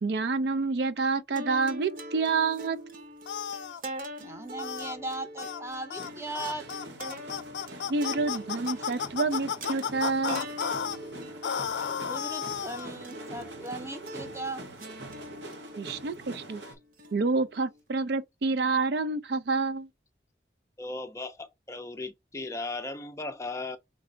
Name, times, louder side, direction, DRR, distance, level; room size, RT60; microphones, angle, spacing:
voice 1, 0.0-2.8 7.9-10.5 15.8-16.6 17.1-19.9, right 3 dB, 70° right, 0.5 m, -28 dB
sound 1, 1.4-17.8, right 1 dB, 50° right, 1.0 m, -43 dB
sound 2, 3.3-3.8 4.6-5.0 5.4-5.6 5.9-6.1 6.4-11.0 11.4-12.9, left 7 dB, 85° left, 0.4 m, -33 dB
voice 2, 4.2-6.7 12.1-14.6 16.2-16.3, right 2 dB, 15° right, 0.7 m, -38 dB
sound 3, 6.0-16.7, right 1 dB, 90° right, 1.2 m, -45 dB
voice 3, 20.8-23.8, left 2 dB, 15° left, 0.4 m, -37 dB
4.3 x 3.3 x 3.8 m
head